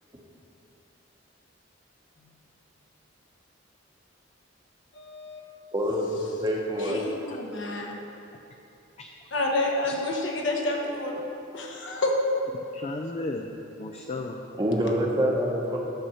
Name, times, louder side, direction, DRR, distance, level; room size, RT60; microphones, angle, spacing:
voice 1, 4.9-5.5 6.8-7.9 9.3-11.2 11.5-12.4, left 2 dB, 70° left, 0 dB, 1.2 m, -28 dB
voice 2, 5.7-6.1 6.4-7.0 14.6-15.8, equal, 20° right, -1 dB, 1.0 m, -26 dB
voice 3, 9.0-9.4 9.9-10.0 12.7-13.5 13.8-14.4, left 2 dB, 35° left, 3 dB, 0.4 m, -35 dB
10.0 x 4.2 x 7.1 m, 2.9 s
head